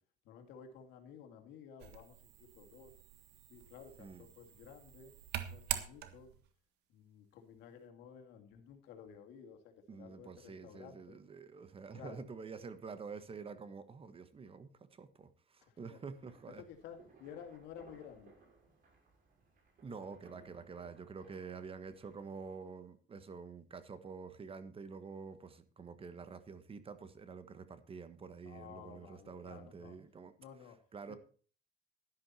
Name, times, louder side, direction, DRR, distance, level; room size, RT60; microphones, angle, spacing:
voice 1, 0.2-2.9 3.5-5.1 5.5-6.3 6.9-11.2 11.9-12.2 15.7-16.0 16.6-18.4 21.2-21.3 28.4-30.0 30.4-30.8 31.1-31.2, left 7 dB, 85° left, 2.4 m, -53 dB
sound 1, 1.8-6.5, right 12 dB, 85° right, 1.6 m, -44 dB
voice 2, 9.9-16.6 19.8-30.3 30.9-31.2, right 5 dB, 35° right, 1.5 m, -48 dB
sound 2, 16.1-22.6, right 4 dB, 55° right, 6.3 m, -63 dB
11.5 x 11.5 x 4.4 m
cardioid pair, 110°, 17 cm